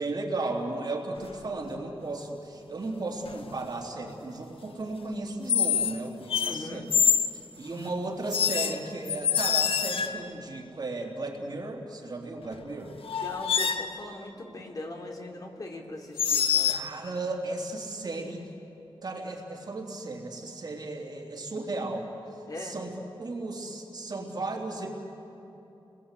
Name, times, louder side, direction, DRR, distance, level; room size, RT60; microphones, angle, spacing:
voice 1, 0.0-6.8 7.6-13.0 16.7-18.5 19.0-22.1 22.6-22.9 23.2-24.9, right 2 dB, 50° right, 0 dB, 3.3 m, -35 dB
sound 1, 1.2-1.5 3.2-3.6 5.5-6.0 6.3-7.3 8.3-10.3 12.5-12.6 13.0-13.9 16.2-16.8, left 8 dB, 85° left, 1.2 m, -26 dB
voice 2, 6.4-6.9 13.2-16.8 22.5-22.8, left 2 dB, 40° left, 1 dB, 3.1 m, -40 dB
30.0 x 21.5 x 8.3 m, 3.0 s
wide cardioid pair, 135°, 9 cm